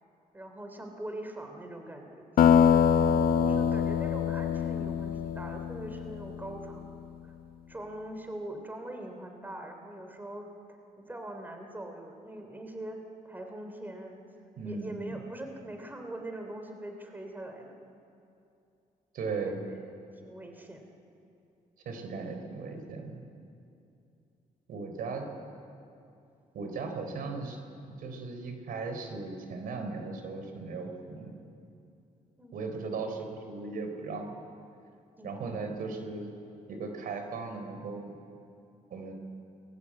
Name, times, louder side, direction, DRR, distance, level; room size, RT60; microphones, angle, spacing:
voice 1, 0.3-2.2 3.3-7.3 7.7-10.5 11.0-13.0 13.2-14.3 14.6-18.0 19.5-19.8 20.2-20.9 32.4-32.7 35.2-35.5, right 1 dB, 15° right, 4 dB, 3.2 m, -42 dB
sound 1, 2.4-6.7, left 8 dB, 85° left, 0.8 m, -24 dB
voice 2, 3.0-3.7 14.6-15.1 19.1-19.6 21.9-23.2 24.7-25.3 26.5-27.6 27.9-31.4 32.5-34.3 35.2-36.3 36.7-38.1 38.9-39.1, right 4 dB, 85° right, 5 dB, 3.8 m, -37 dB
29.0 x 20.5 x 8.5 m, 2.6 s
cardioid pair, 120°, 15 cm